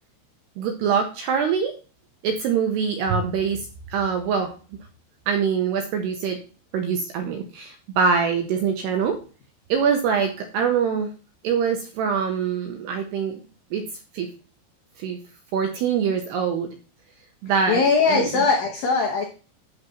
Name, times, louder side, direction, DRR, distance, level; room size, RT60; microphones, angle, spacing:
voice 1, 0.6-1.7 2.2-3.6 3.9-4.5 5.3-6.4 6.7-9.2 9.7-11.1 11.4-13.4 13.7-13.8 14.1-14.3 15.0-15.2 15.5-16.7 17.4-17.8 18.1-18.4, right 6 dB, 80° right, 5 dB, 2.5 m, -24 dB
voice 2, 17.7-19.3, left 4 dB, 85° left, 2 dB, 2.0 m, -20 dB
12.0 x 4.1 x 5.5 m, 0.36 s
omnidirectional pair, 5.7 m